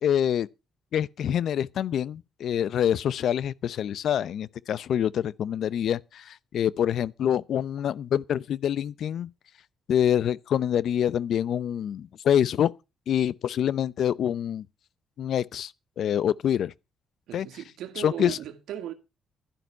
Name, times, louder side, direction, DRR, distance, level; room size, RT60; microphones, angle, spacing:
voice 1, 0.0-0.5 0.9-9.3 9.9-12.7 13.1-14.6 15.2-15.7 16.0-16.7 17.3-17.5 18.0-18.4, left 9 dB, 70° left, 0.6 m, -26 dB
voice 2, 17.3-18.9, right 11 dB, 85° right, 1.8 m, -37 dB
12.0 x 11.0 x 5.5 m
cardioid pair, 90°, 0 cm